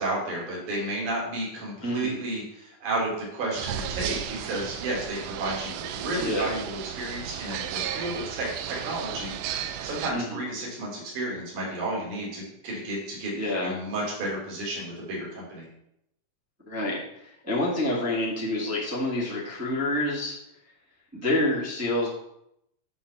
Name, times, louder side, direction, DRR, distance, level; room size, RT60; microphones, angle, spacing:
voice 1, 0.0-15.7, right 1 dB, 60° right, -4 dB, 4.3 m, -32 dB
voice 2, 1.8-2.1 6.2-6.5 10.1-10.4 13.3-13.7 16.6-20.3 21.1-22.1, left 1 dB, 5° right, -6 dB, 1.6 m, -28 dB
sound 1, 3.5-10.1, right 9 dB, 80° right, 2.1 m, -34 dB
9.6 x 4.2 x 6.9 m, 0.79 s
omnidirectional pair, 4.0 m